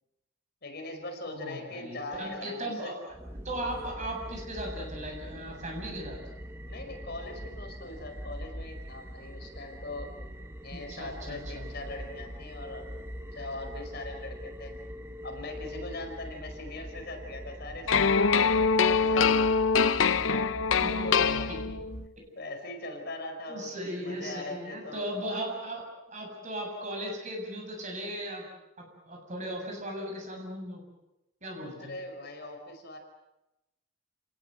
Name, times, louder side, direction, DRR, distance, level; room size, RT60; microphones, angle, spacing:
voice 1, 0.6-2.9 6.7-10.1 10.6-12.9 13.3-14.7 15.2-19.3 21.0-21.5 22.3-25.1 31.8-33.0, left 2 dB, 50° left, 3 dB, 5.1 m, -41 dB
voice 2, 1.3-3.0 3.4-6.2 10.7-11.7 20.8-21.6 23.5-25.8 26.1-28.4 28.8-30.8 31.4-31.9, right 1 dB, 35° right, 1 dB, 7.8 m, -37 dB
sound 1, 3.1-22.1, equal, 10° right, 1.4 m, -42 dB
sound 2, 17.9-22.0, left 5 dB, 70° left, 0.8 m, -24 dB
29.5 x 19.0 x 8.0 m, 0.96 s
head